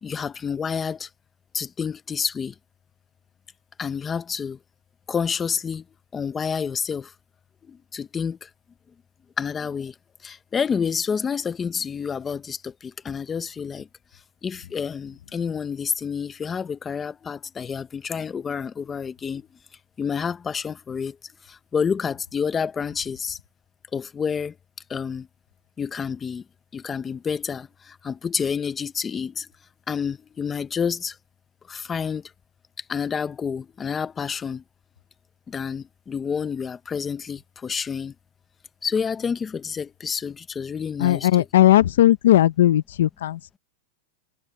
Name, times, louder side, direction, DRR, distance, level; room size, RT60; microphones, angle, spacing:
voice 1, 0.0-1.1 1.5-2.5 3.8-4.6 5.1-5.8 6.1-7.1 7.7-8.5 9.4-9.9 10.2-13.9 14.4-19.4 20.0-21.2 21.4-23.4 23.9-24.5 24.9-25.3 25.8-26.4 26.7-29.5 29.9-31.2 31.7-32.3 32.9-34.6 35.5-38.1 38.8-41.3, left 6 dB, 15° left, 0.8 m, -29 dB
voice 2, 41.0-43.6, left 13 dB, 80° left, 0.7 m, -18 dB
supercardioid pair, 160°, 0 cm